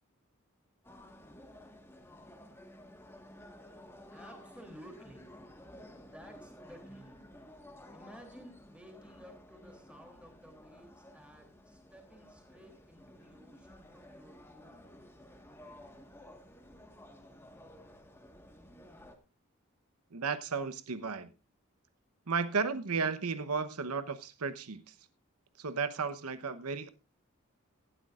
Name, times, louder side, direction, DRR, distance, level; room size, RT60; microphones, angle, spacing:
sound 1, 0.8-19.2, left 1 dB, 10° left, 1.5 m, -54 dB
voice 1, 4.1-5.3 6.0-7.2 7.9-14.8, equal, 5° right, 3.0 m, -55 dB
voice 2, 20.1-21.3 22.3-24.9 25.6-26.9, right 5 dB, 90° right, 1.0 m, -34 dB
18.0 x 12.0 x 2.5 m
head